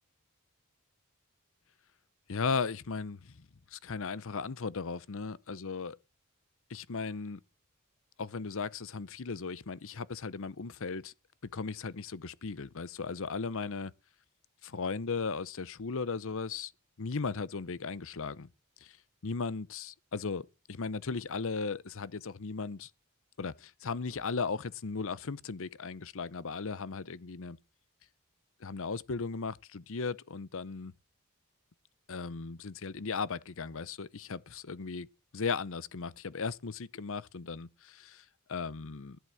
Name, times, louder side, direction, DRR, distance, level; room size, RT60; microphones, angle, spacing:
voice 1, 2.3-3.5 3.7-6.0 6.7-7.4 8.2-11.1 11.5-13.9 14.6-16.7 17.0-18.5 18.8-19.0 19.2-22.9 23.4-27.6 28.6-30.9 32.1-35.1 35.3-39.2, left 4 dB, 65° left, 0.8 m, -36 dB
14.0 x 11.0 x 6.4 m
head